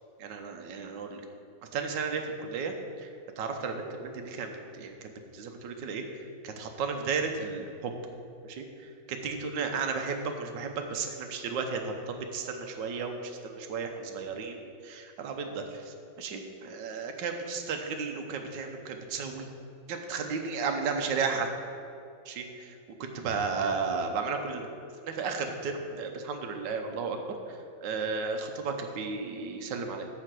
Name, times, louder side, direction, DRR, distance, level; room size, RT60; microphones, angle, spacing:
voice 1, 0.2-1.2 1.7-3.1 3.4-6.0 6.4-7.9 8.4-19.5 19.9-21.5 22.2-24.7 25.0-30.0, right 5 dB, 70° right, 4 dB, 1.5 m, -34 dB
11.5 x 4.3 x 7.5 m, 2.5 s
omnidirectional pair, 2.1 m